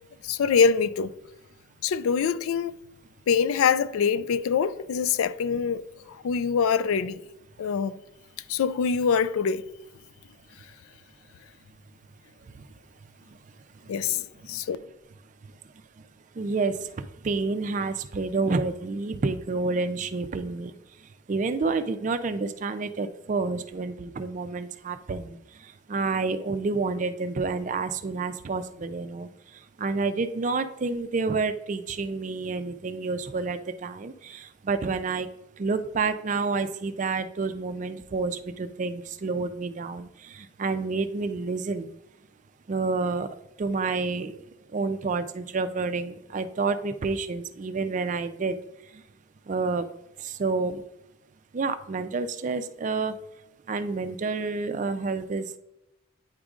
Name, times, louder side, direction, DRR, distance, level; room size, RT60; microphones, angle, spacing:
voice 1, 0.2-1.1 1.8-2.8 3.3-7.2 7.6-8.0 8.5-9.6 13.9-14.8, left 6 dB, 85° left, 0.3 m, -24 dB
voice 2, 16.4-16.9 17.2-20.7 21.3-25.4 25.6-29.3 29.8-35.3 35.6-41.9 42.7-43.3 43.6-44.3 44.7-48.6 49.5-49.9 50.2-50.8 51.5-53.1 53.7-55.6, right 4 dB, 35° right, 0.3 m, -29 dB
8.9 x 5.0 x 2.4 m
head